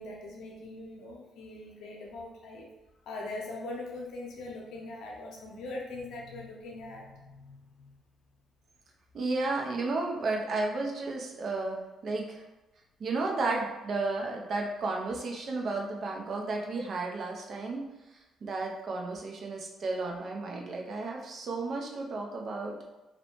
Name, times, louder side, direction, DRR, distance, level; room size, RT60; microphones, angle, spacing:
voice 1, 0.0-2.7 3.1-8.0, left 2 dB, 80° left, -1 dB, 0.6 m, -41 dB
voice 2, 9.1-12.4 13.0-17.8 18.4-22.7, right 3 dB, 55° right, 0 dB, 0.5 m, -33 dB
2.7 x 2.1 x 3.0 m, 1.0 s
cardioid pair, 90°, 0 cm